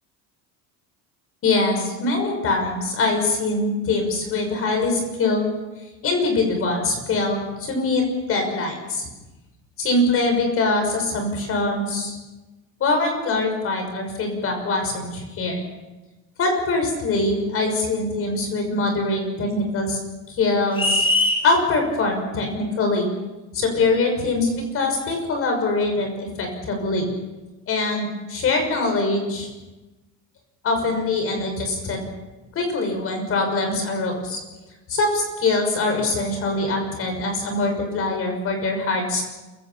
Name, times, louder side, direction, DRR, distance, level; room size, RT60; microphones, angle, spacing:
voice 1, 1.4-5.5 6.0-9.1 9.8-12.2 12.8-15.6 16.4-20.0 20.3-21.0 21.4-23.1 23.5-27.1 27.7-29.5 30.6-32.0 32.5-34.4 34.9-39.2, left 2 dB, 40° left, 4 dB, 6.1 m, -23 dB
sound 1, 20.7-21.5, left 1 dB, 15° left, 5.1 m, -20 dB
27.5 x 16.5 x 5.9 m, 1.1 s
cardioid pair, 160°, 35 cm